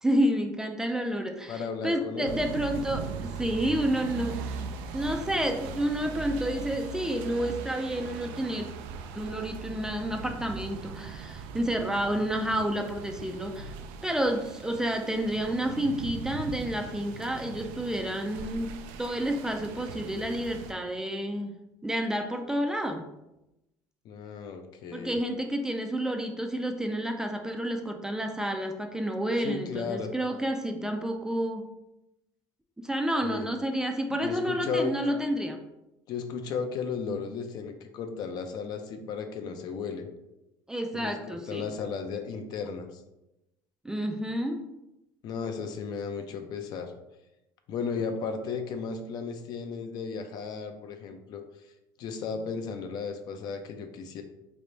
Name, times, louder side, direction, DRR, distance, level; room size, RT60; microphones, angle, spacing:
voice 1, 0.0-4.6 4.9-8.7 9.1-13.7 14.0-18.7 19.0-21.6 21.8-23.1 24.9-31.7 32.8-35.6 40.7-41.7 43.8-44.7, right 1 dB, 5° right, 4 dB, 0.3 m, -30 dB
voice 2, 1.5-2.4 24.0-25.2 29.4-30.1 33.2-33.5 34.2-34.9 36.1-40.1 40.9-43.0 45.2-46.9 47.7-51.4 52.0-54.2, left 5 dB, 55° left, 6 dB, 0.5 m, -34 dB
sound 1, 2.3-20.7, right 5 dB, 85° right, 0.4 m, -40 dB
3.4 x 2.5 x 4.0 m, 0.91 s
cardioid pair, 120°, 8 cm